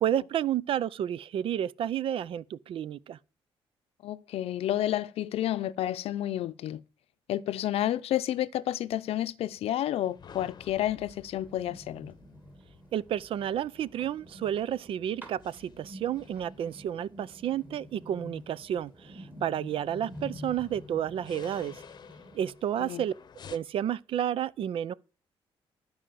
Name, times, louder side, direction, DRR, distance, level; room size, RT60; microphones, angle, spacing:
voice 1, 0.0-3.2 12.9-21.8 22.3-23.1 23.5-24.9, right 10 dB, 65° right, 0.5 m, -31 dB
voice 2, 4.0-6.8 7.3-12.1 22.8-23.0, left 12 dB, 80° left, 0.6 m, -30 dB
sound 1, 10.0-23.6, left 7 dB, 45° left, 0.8 m, -54 dB
sound 2, 11.4-22.5, left 1 dB, 20° right, 3.2 m, -48 dB
12.5 x 4.9 x 7.7 m
cardioid pair, 120°, 10 cm